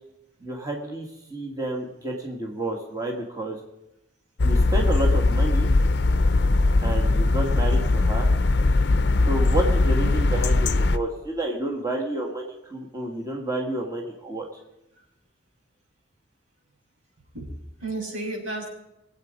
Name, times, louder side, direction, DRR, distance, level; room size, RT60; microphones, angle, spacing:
voice 1, 0.4-3.6 4.4-5.7 6.8-8.3 9.2-14.4, right 1 dB, 20° right, 0 dB, 1.7 m, -30 dB
sound 1, 4.4-11.0, left 2 dB, 60° left, 0.6 m, -20 dB
voice 2, 17.3-18.7, right 2 dB, 90° right, -3 dB, 6.3 m, -33 dB
22.5 x 8.4 x 5.2 m, 0.91 s
head